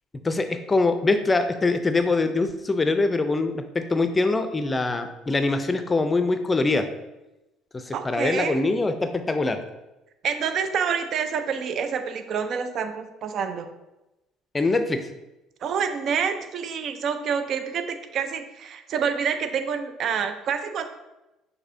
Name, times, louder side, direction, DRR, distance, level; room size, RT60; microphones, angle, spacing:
voice 1, 0.2-6.8 7.7-9.6 14.5-15.0, left 3 dB, 25° left, 8 dB, 0.5 m, -23 dB
voice 2, 7.9-8.6 10.2-13.7 15.6-20.9, right 6 dB, 55° right, 8 dB, 0.4 m, -27 dB
6.0 x 2.7 x 2.6 m, 0.97 s
hypercardioid pair, 60°, 0 cm